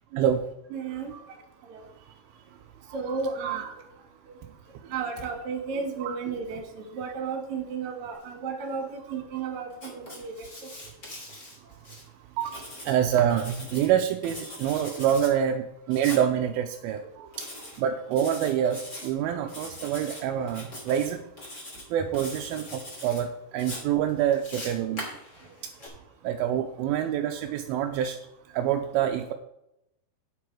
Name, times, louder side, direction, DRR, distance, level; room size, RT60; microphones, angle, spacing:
voice 1, 0.7-1.2 1.7-1.9 2.9-3.8 4.8-10.5 17.2-17.3 20.8-20.9, right 5 dB, 55° right, 4 dB, 2.7 m, -33 dB
Writing, 9.7-12.0 12.4-13.9 14.2-15.3 15.9-16.2 17.3-17.8 18.1-19.1 19.5-20.2 20.5-21.1 21.4-21.8 22.1-23.2 23.6-25.9, left 1 dB, 25° left, 2.7 m, -41 dB
voice 2, 12.4-17.0 17.4-17.5 17.8-21.2 21.9-25.1 25.6-25.7 26.2-28.2 28.5-29.3, right 9 dB, 80° right, 4 dB, 2.3 m, -26 dB
8.6 x 8.2 x 4.7 m, 0.83 s
omnidirectional pair, 4.6 m